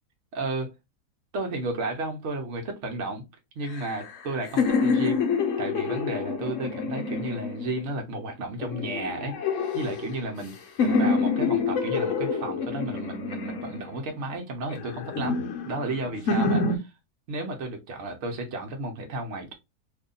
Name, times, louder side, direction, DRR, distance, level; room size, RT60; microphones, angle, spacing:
voice 1, 0.3-0.7 1.3-3.2 3.6-5.2 5.6-10.5 10.8-16.9 17.3-19.5, right 2 dB, 55° right, 1.0 m, -33 dB
sound 1, 3.7-8.0 8.6-10.5 10.8-14.1 14.7-16.8, left 4 dB, 60° left, 1.0 m, -27 dB
2.8 x 2.6 x 3.7 m
omnidirectional pair, 1.6 m